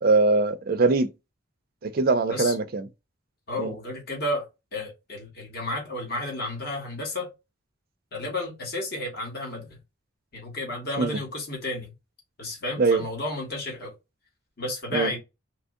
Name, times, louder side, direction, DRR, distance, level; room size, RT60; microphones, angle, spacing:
voice 1, 0.0-1.1 1.8-2.9 3.6-3.7 11.0-11.2 12.8-13.0 14.9-15.1, right 3 dB, 45° right, 0.4 m, -22 dB
voice 2, 3.5-4.5 4.7-7.3 8.1-9.8 10.3-11.9 12.4-13.9 14.6-15.2, left 2 dB, 50° left, 1.3 m, -32 dB
3.1 x 2.6 x 3.5 m
head